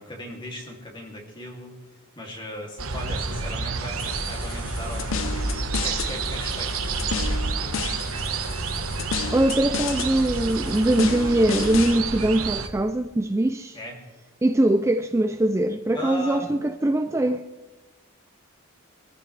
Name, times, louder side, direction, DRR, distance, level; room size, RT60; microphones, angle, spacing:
voice 1, 0.0-1.7 2.2-5.4 5.8-8.0 13.7-14.0 15.9-16.5, left 1 dB, 20° left, 2.6 m, -38 dB
sound 1, 2.8-12.7, right 4 dB, 80° right, 1.2 m, -29 dB
sound 2, 4.0-12.0, left 6 dB, 65° left, 0.7 m, -33 dB
voice 2, 9.3-13.8 14.4-17.4, right 1 dB, 15° right, 0.3 m, -22 dB
23.5 x 14.0 x 3.3 m
head